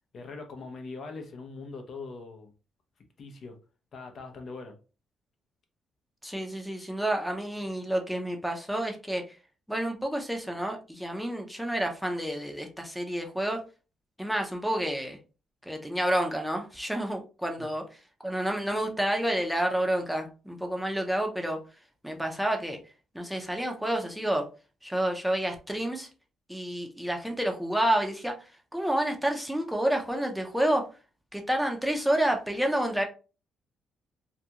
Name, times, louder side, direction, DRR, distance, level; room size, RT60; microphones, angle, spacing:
voice 1, 0.1-2.5 3.2-3.6 3.9-4.7 17.6-17.7, left 3 dB, 55° left, 0.6 m, -41 dB
voice 2, 6.2-9.3 9.7-13.6 14.2-15.2 15.7-21.6 22.0-22.8 23.1-24.5 24.8-26.1 26.5-28.4 28.7-30.9 31.3-33.0, right 1 dB, ahead, 0.6 m, -29 dB
2.4 x 2.2 x 2.8 m
cardioid pair, 90°, 0 cm